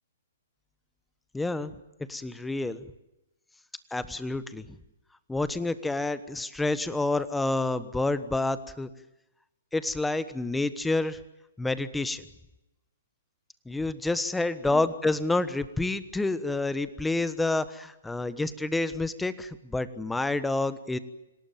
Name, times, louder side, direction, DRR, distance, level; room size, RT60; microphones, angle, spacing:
voice 1, 1.3-1.7 2.1-2.8 3.9-4.7 5.3-8.9 9.7-11.2 11.6-12.2 13.7-21.0, left 2 dB, 5° left, 14 dB, 1.2 m, -28 dB
26.5 x 18.0 x 9.2 m, 0.95 s
figure-of-eight pair, 125°, 0 cm